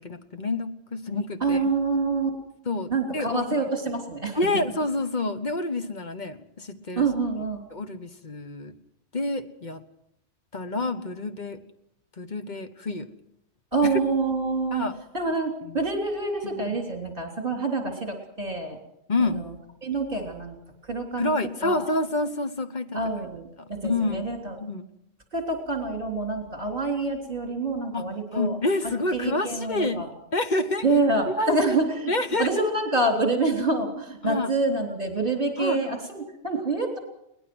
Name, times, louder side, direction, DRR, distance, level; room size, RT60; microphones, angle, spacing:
voice 1, 0.0-1.6 2.6-3.6 4.3-7.1 7.7-8.7 9.1-9.8 10.5-11.6 12.2-13.1 13.8-14.0 14.7-15.0 15.6-15.8 16.4-16.8 19.1-19.4 21.2-23.0 23.6-24.3 24.6-24.9 27.9-30.0 30.3-30.9 31.3-31.8 32.1-32.5 34.2-34.5 35.6-35.9, left 2 dB, 40° left, 8 dB, 1.3 m, -28 dB
voice 2, 1.4-2.3 2.9-4.4 7.0-7.7 13.7-14.8 15.1-18.8 19.2-19.5 19.8-20.6 20.9-21.3 21.6-21.9 22.9-24.5 25.3-28.6 29.1-30.1 30.8-32.1 32.4-37.0, right 3 dB, 45° right, 2 dB, 3.8 m, -26 dB
22.0 x 19.0 x 6.2 m, 0.81 s
omnidirectional pair, 1.3 m